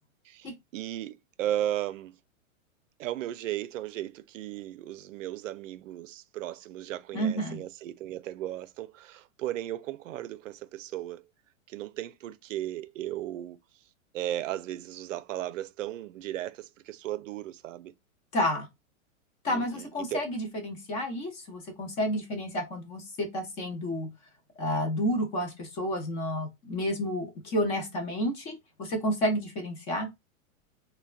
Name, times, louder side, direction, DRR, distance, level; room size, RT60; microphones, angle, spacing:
voice 1, 0.3-2.2 3.0-11.2 11.7-13.6 14.1-17.9 19.5-20.3, right 13 dB, 65° right, 0.5 m, -36 dB
voice 2, 7.1-7.6 18.3-18.7 19.4-24.1 24.6-30.1, equal, 15° left, 0.4 m, -30 dB
3.3 x 2.2 x 2.3 m
hypercardioid pair, 140°, 41 cm